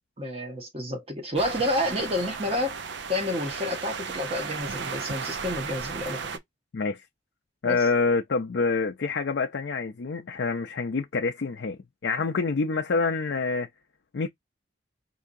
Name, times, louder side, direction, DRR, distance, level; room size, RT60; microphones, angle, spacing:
voice 1, 0.2-2.8 3.1-6.4 7.6-7.8, left 1 dB, 30° right, 1.1 m, -29 dB
sound 1, 1.4-6.4, right 5 dB, 65° right, 0.5 m, -35 dB
voice 2, 7.6-13.7 14.1-14.3, left 4 dB, 70° left, 0.5 m, -27 dB
4.7 x 2.7 x 2.6 m
head